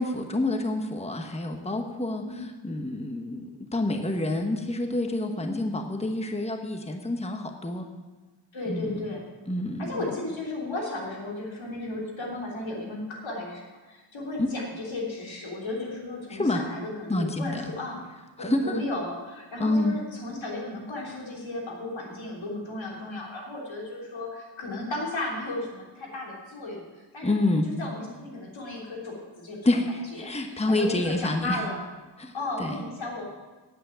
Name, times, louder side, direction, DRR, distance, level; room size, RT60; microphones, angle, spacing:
voice 1, 0.0-7.9 8.7-9.0 9.5-10.1 14.4-14.5 16.3-16.6 17.1-17.7 18.4-18.8 19.6-20.0 27.2-27.7 29.6-31.6 32.2-32.8, left 2 dB, 15° left, 5 dB, 1.1 m, -28 dB
voice 2, 5.4-5.7 8.5-9.2 9.8-18.0 18.4-26.8 27.1-27.3 27.6-29.7 30.2-31.8 32.1-33.2, left 2 dB, 85° left, -3 dB, 3.5 m, -35 dB
9.5 x 8.2 x 9.0 m, 1.2 s
wide cardioid pair, 75°, 45 cm